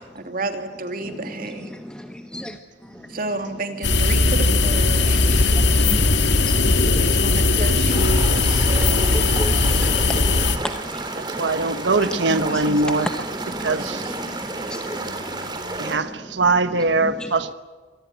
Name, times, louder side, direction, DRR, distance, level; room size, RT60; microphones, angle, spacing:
voice 1, 0.2-1.7 3.1-5.5 7.1-9.4 13.6-16.0, right 2 dB, 55° right, 2.8 m, -33 dB
voice 2, 1.7-2.6 2.8-3.1 4.9-7.2 7.5-7.7 8.0-11.5 12.0-16.0 17.0-17.3, equal, 5° left, 0.9 m, -34 dB
sound 1, 3.8-10.6, left 3 dB, 80° left, 1.8 m, -18 dB
sound 2, 7.9-16.0, right 2 dB, 25° right, 3.6 m, -31 dB
voice 3, 11.4-13.1 13.6-14.0 15.8-17.5, right 3 dB, 85° right, 1.2 m, -21 dB
25.5 x 20.0 x 9.4 m
head